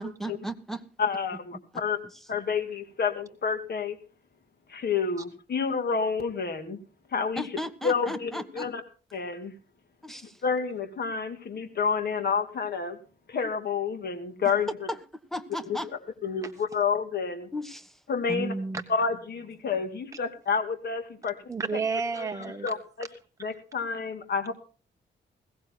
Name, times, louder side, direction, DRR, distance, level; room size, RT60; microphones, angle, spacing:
voice 1, 0.0-0.8 1.5-2.3 7.4-8.7 10.0-10.4 14.9-15.0 15.3-15.9 17.5-18.0 18.3-18.8, equal, ahead, 11 dB, 1.3 m, -35 dB
voice 2, 1.0-2.0 2.3-4.0 4.7-6.8 7.1-7.4 7.8-8.8 9.1-9.5 10.4-13.0 13.3-14.7 16.2-17.5 18.1-18.5 18.9-21.4 22.2-22.3 22.6-23.1 23.4-24.5, left 5 dB, 55° left, 8 dB, 2.4 m, -29 dB
voice 3, 21.5-22.7, right 5 dB, 15° right, 6 dB, 1.0 m, -30 dB
21.0 x 17.0 x 2.2 m, 0.37 s
wide cardioid pair, 135°, 20 cm